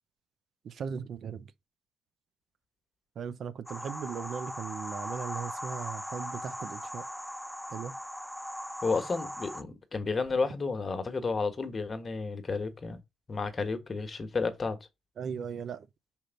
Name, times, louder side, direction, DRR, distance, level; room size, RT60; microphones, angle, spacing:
voice 1, 0.6-1.5 3.2-7.0 7.7-8.0 15.2-15.9, right 7 dB, 60° right, 0.6 m, -38 dB
sound 1, 3.7-9.6, equal, ahead, 0.6 m, -39 dB
voice 2, 8.8-13.0 13.3-14.8, left 4 dB, 35° left, 1.3 m, -31 dB
5.2 x 4.4 x 5.1 m
cardioid pair, 90°, 0 cm